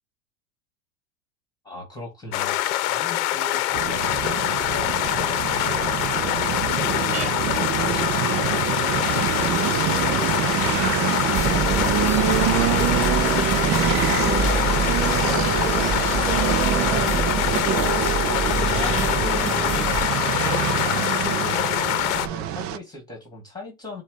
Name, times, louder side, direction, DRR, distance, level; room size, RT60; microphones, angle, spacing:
voice 1, 1.6-7.5 7.8-18.5 18.7-24.0, left 2 dB, 10° left, 2.5 m, -39 dB
sound 1, 2.3-22.3, left 15 dB, 60° left, 0.9 m, -24 dB
sound 2, 3.7-22.8, right 11 dB, 30° right, 0.5 m, -25 dB
sound 3, 11.3-20.1, right 3 dB, 15° right, 1.2 m, -28 dB
7.2 x 2.5 x 5.1 m
supercardioid pair, 120°, 46 cm